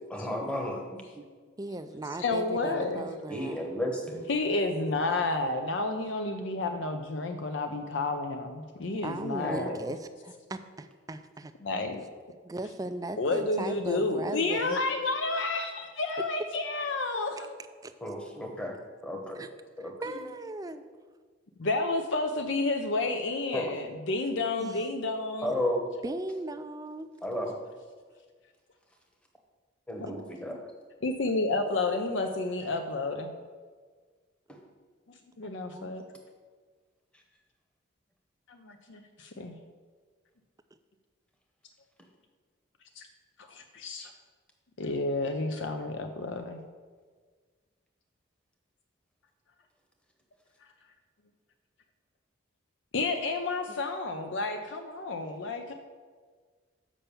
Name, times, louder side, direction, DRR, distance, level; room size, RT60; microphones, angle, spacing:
voice 1, 0.1-0.8 3.3-4.3 9.4-9.8 18.0-18.7 19.0-19.4 19.8-19.9 23.5-23.7 25.4-25.8 27.2-27.6 29.9-30.7 34.5-34.6, left 1 dB, 5° left, 2 dB, 1.0 m, -33 dB
voice 2, 1.6-3.7 9.0-11.5 12.4-14.8 17.8-17.9 19.3-19.5 19.8-20.9 24.6-24.8 26.0-27.1 35.7-35.9 53.7-53.8, right 2 dB, 15° right, 9 dB, 0.3 m, -38 dB
voice 3, 2.2-3.1 4.3-9.8 11.6-12.0 13.2-17.5 21.6-25.5 30.0-30.1 31.0-33.3 35.4-36.0 38.5-39.5 43.0-43.1 43.5-44.1 44.8-46.6 52.9-55.7, left 3 dB, 65° left, 6 dB, 0.6 m, -30 dB
7.2 x 5.7 x 6.8 m, 1.6 s
head